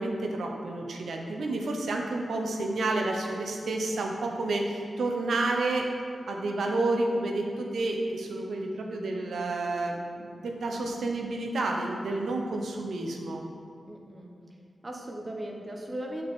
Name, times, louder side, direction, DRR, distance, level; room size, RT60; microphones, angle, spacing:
voice 1, 0.0-5.9 6.3-13.4, right 2 dB, 85° right, 2 dB, 0.8 m, -30 dB
voice 2, 13.9-14.3 14.8-16.3, right 1 dB, 35° right, 1 dB, 1.1 m, -37 dB
7.5 x 5.9 x 3.7 m, 2.4 s
cardioid pair, 55°, 0 cm